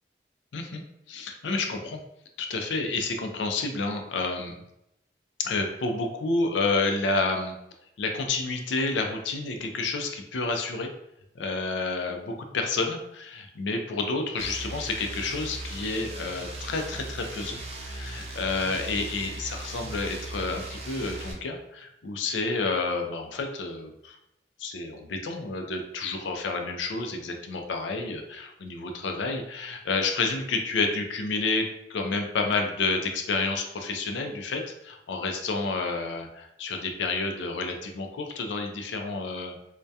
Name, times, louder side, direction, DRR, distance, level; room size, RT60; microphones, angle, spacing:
voice 1, 0.5-0.8 1.1-2.0 2.4-4.6 5.4-7.6 8.0-10.9 11.4-24.2 24.6-39.6, left 3 dB, 85° left, 4 dB, 0.4 m, -30 dB
sound 1, 14.4-21.3, right 2 dB, 35° right, 0.4 m, -38 dB
2.6 x 2.2 x 2.2 m, 0.83 s
head